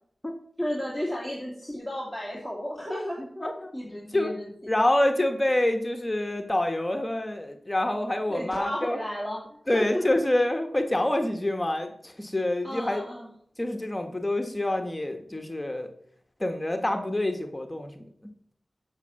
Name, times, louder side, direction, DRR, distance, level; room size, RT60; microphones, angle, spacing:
voice 1, 0.6-3.4 3.7-4.5 8.3-10.0 12.6-13.3, equal, 10° right, -3 dB, 2.5 m, -33 dB
voice 2, 4.7-9.0 9.7-13.0 13.6-15.9 16.4-18.1, left 1 dB, 20° left, 5 dB, 1.3 m, -27 dB
8.2 x 6.5 x 6.9 m, 0.64 s
cardioid pair, 50°, 0 cm